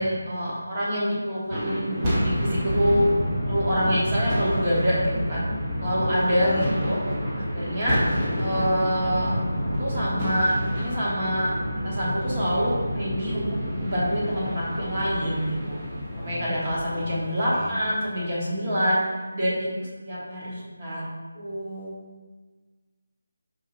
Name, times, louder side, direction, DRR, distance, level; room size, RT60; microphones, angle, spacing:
voice 1, 0.0-3.1 3.4-5.4 5.8-7.0 7.3-8.0 8.4-11.5 11.8-13.5 13.8-15.8 16.2-19.0 19.3-21.1 21.3-21.9, equal, 35° right, -6 dB, 1.3 m, -26 dB
sound 1, 1.4-17.8, equal, 15° right, 0.8 m, -28 dB
voice 2, 5.8-6.7 16.1-16.5 16.9-17.2 17.5-17.7, left 3 dB, 30° left, -2 dB, 0.4 m, -36 dB
4.3 x 2.8 x 3.9 m, 1.4 s
figure-of-eight pair, 170°, 0 cm